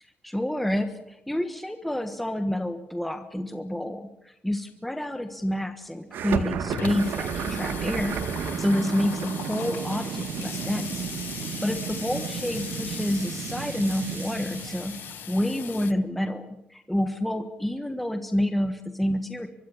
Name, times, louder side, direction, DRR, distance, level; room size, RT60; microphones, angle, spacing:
voice 1, 0.2-8.1 8.4-11.1 11.4-19.5, left 1 dB, 5° left, 7 dB, 1.4 m, -28 dB
Water tap faucet / Sink (filling or washing), 5.3-5.4 5.7-5.8 6.0-15.9, left 10 dB, 70° left, 1.3 m, -39 dB
sound 1, 6.1-15.2, right 7 dB, 70° right, 2.1 m, -32 dB
24.0 x 23.5 x 7.2 m, 0.80 s
cardioid pair, 170°, 4 cm